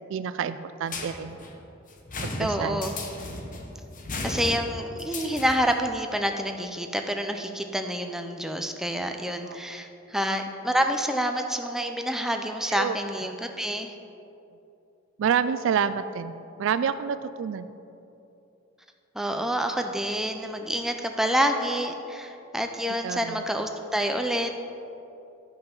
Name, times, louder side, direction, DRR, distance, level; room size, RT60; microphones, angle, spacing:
voice 1, 0.1-1.4 2.2-2.8 9.5-9.6 12.7-13.0 15.2-17.7 23.0-23.4, right 7 dB, 70° right, 13 dB, 0.3 m, -28 dB
sound 1, 0.9-5.9, left 2 dB, 40° left, 0.9 m, -36 dB
voice 2, 2.4-2.9 4.2-13.9 19.1-24.6, equal, ahead, 5 dB, 0.4 m, -28 dB
11.5 x 5.6 x 5.3 m, 2.8 s
head